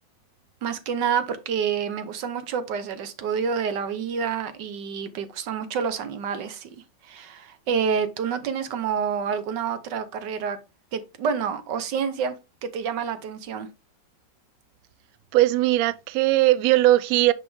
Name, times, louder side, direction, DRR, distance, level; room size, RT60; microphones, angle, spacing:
voice 1, 0.6-6.8 7.0-10.6 10.9-12.3 12.6-13.7, right 6 dB, 70° right, 1.5 m, -28 dB
voice 2, 15.3-17.3, right 16 dB, 90° right, 0.7 m, -19 dB
6.1 x 5.3 x 3.5 m
omnidirectional pair, 2.1 m